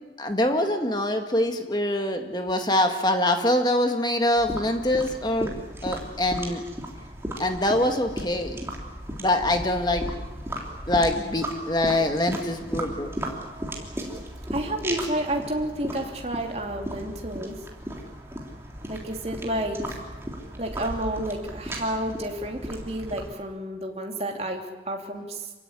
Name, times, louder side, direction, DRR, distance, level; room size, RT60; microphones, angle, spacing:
voice 1, 0.2-5.5 5.8-6.6 7.4-8.6 9.2-10.1 10.9-13.1, left 1 dB, 25° left, 5 dB, 1.9 m, -24 dB
sound 1, 4.4-23.4, right 1 dB, 15° right, 3.4 m, -36 dB
voice 2, 14.5-17.6 18.9-20.0 20.6-25.5, right 1 dB, 35° right, 1 dB, 3.1 m, -30 dB
27.5 x 16.5 x 9.9 m, 1.2 s
head